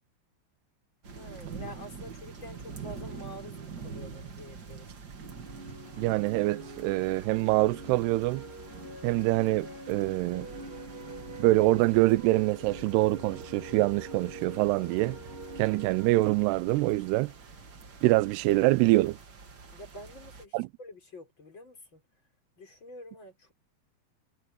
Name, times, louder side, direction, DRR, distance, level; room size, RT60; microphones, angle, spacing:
sound 1, 1.0-20.5, right 5 dB, 60° right, 1.0 m, -46 dB
voice 1, 1.1-5.0 19.7-22.0 22.6-23.5, left 1 dB, 25° left, 6.2 m, -47 dB
sound 2, 5.1-17.7, right 1 dB, 15° right, 4.6 m, -45 dB
voice 2, 6.0-8.4 9.0-10.5 11.4-15.2 15.6-17.3 18.0-19.2 20.5-20.7, right 19 dB, 85° right, 2.4 m, -25 dB
omnidirectional pair, 5.1 m